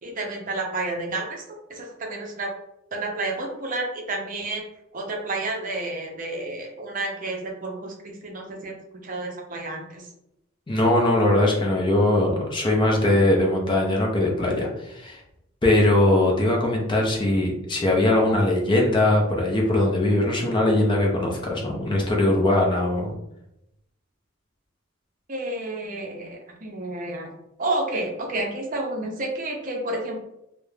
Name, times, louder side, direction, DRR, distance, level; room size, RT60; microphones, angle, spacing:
voice 1, 0.0-1.4 1.7-2.5 2.9-4.6 4.9-8.8 9.0-10.1 25.3-27.3 27.6-30.2, right 2 dB, 40° right, 1 dB, 0.5 m, -30 dB
voice 2, 10.7-15.2 15.6-23.1, left 1 dB, 25° left, -1 dB, 0.5 m, -21 dB
2.4 x 2.1 x 3.1 m, 0.83 s
head